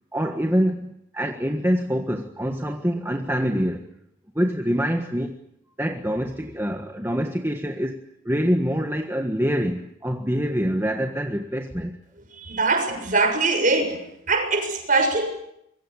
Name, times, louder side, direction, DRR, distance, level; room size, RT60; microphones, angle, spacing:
voice 1, 0.1-3.9 4.3-5.3 5.8-11.9, equal, 10° right, 4 dB, 1.5 m, -25 dB
voice 2, 12.4-14.0 14.3-15.3, right 3 dB, 40° right, 6 dB, 6.6 m, -22 dB
26.0 x 23.0 x 8.5 m, 0.76 s
head